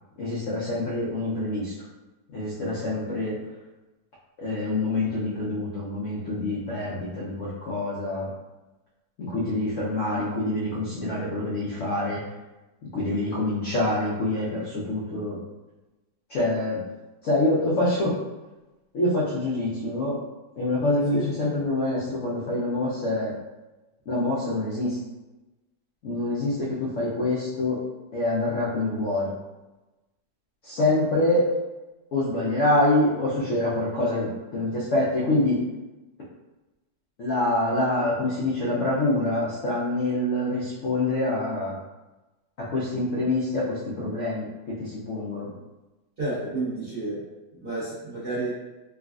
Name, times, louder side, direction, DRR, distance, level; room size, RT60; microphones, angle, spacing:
voice 1, 0.2-1.7 2.3-3.4 4.4-8.3 9.2-12.2 12.9-15.4 16.3-16.8 17.2-18.2 18.9-20.2 20.6-23.3 24.1-25.0 26.0-27.8 28.1-29.3 30.6-31.5 32.1-35.6 37.2-41.7 42.6-45.5, left 2 dB, 70° left, -7 dB, 0.7 m, -26 dB
voice 2, 46.2-47.2 47.5-48.5, right 2 dB, 45° right, -10 dB, 0.8 m, -30 dB
3.4 x 2.3 x 2.3 m, 1.1 s
omnidirectional pair, 2.0 m